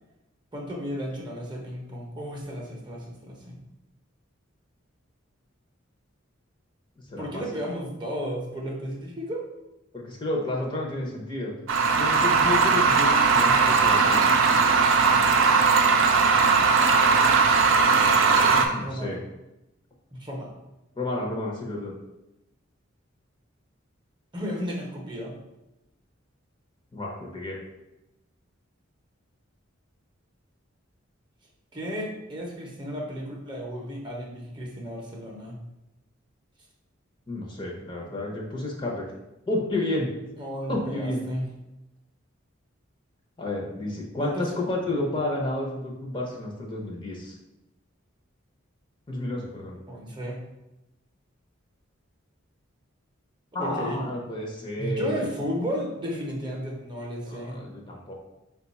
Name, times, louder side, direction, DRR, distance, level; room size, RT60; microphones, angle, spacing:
voice 1, 0.5-3.6 7.1-9.4 18.7-19.2 20.1-20.6 24.3-25.3 31.7-35.6 40.4-41.5 44.2-44.4 49.9-50.4 53.5-54.0 54.8-57.6, equal, 25° right, -1 dB, 0.7 m, -33 dB
voice 2, 7.1-7.4 9.9-11.5 12.0-14.3 18.5-19.2 21.0-21.9 26.9-27.6 37.3-39.1 39.5-40.1 40.7-41.2 43.4-47.3 49.1-49.8 53.5-55.3 57.3-58.1, left 2 dB, 25° left, -2 dB, 0.6 m, -31 dB
sound 1, 11.7-18.7, right 5 dB, 70° right, 0.4 m, -19 dB
4.5 x 2.3 x 4.0 m, 0.94 s
head